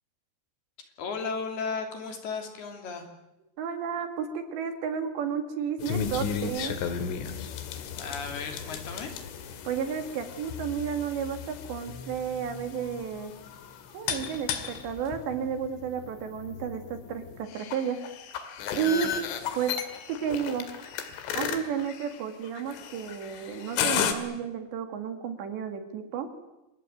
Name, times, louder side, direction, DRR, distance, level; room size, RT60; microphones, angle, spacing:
voice 1, 1.0-3.1 8.0-9.1, left 4 dB, 55° left, 5 dB, 4.6 m, -34 dB
voice 2, 3.6-6.7 9.6-13.3 13.9-18.0 18.8-19.1 19.5-19.8 20.1-20.7 21.4-26.3, right 7 dB, 65° right, 7 dB, 4.0 m, -32 dB
sound 1, 5.8-24.1, left 7 dB, 75° left, 4.5 m, -35 dB
27.5 x 21.0 x 9.2 m, 0.97 s
omnidirectional pair, 5.9 m